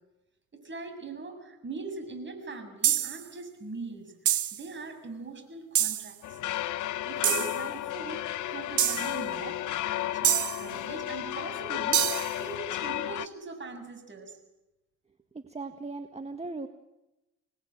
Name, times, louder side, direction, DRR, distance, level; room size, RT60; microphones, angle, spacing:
voice 1, 0.6-6.4 7.0-14.4, right 4 dB, 40° right, 6 dB, 7.3 m, -41 dB
sound 1, 2.8-3.2 4.3-4.6 5.8-6.1 7.2-7.6 8.8-9.1 10.2-10.6 11.9-12.3, right 11 dB, 75° right, 1.4 m, -26 dB
sound 2, 6.2-13.3, left 14 dB, 75° left, 1.1 m, -33 dB
voice 2, 15.3-16.7, right 3 dB, 20° right, 7 dB, 1.7 m, -38 dB
27.0 x 19.5 x 9.2 m, 0.98 s
cardioid pair, 90°, 30 cm